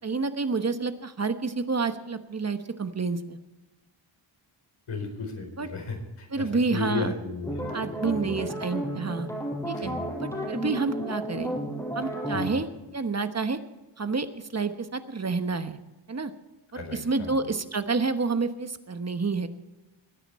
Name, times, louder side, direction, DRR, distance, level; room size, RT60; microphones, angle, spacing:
voice 1, 0.0-3.4 5.6-5.7 6.3-7.1 7.7-9.3 9.7-9.9 10.2-11.5 11.9-12.7 12.9-13.6 14.0-15.8 16.1-16.3 16.7-19.5, right 4 dB, 30° right, 9 dB, 1.1 m, -29 dB
voice 2, 4.9-7.7 8.0-8.5 9.8-10.1 12.3-12.6 16.7-17.4, left 4 dB, 80° left, 3 dB, 4.4 m, -35 dB
sound 1, 7.4-12.6, right 1 dB, 5° left, 5.6 m, -32 dB
22.0 x 9.9 x 4.3 m, 1.1 s
wide cardioid pair, 105°, 48 cm